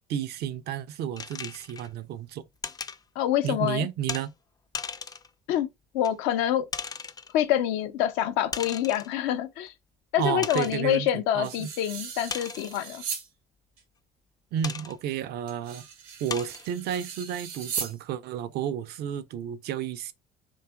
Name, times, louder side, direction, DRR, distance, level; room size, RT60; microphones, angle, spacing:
voice 1, 0.1-2.4 3.4-4.3 10.2-11.1 11.3-11.7 14.5-15.8 16.2-20.1, right 9 dB, 55° right, 0.4 m, -31 dB
sound 1, 1.2-1.9 2.6-3.0 4.1-4.3 4.7-5.3 6.0-6.1 6.7-7.3 8.5-9.1 9.7-9.8 10.4-10.8 12.3-12.9 14.6-14.9 15.6-15.7 16.3-16.7, left 5 dB, 20° left, 0.4 m, -36 dB
voice 2, 3.2-3.9 5.5-5.7 5.9-6.7 7.3-9.7 10.1-13.0, left 11 dB, 70° left, 0.5 m, -26 dB
sound 2, 11.4-13.3 13.8-13.9 15.5-18.0, right 6 dB, 80° right, 0.9 m, -38 dB
2.6 x 2.3 x 2.3 m
hypercardioid pair, 60°, 20 cm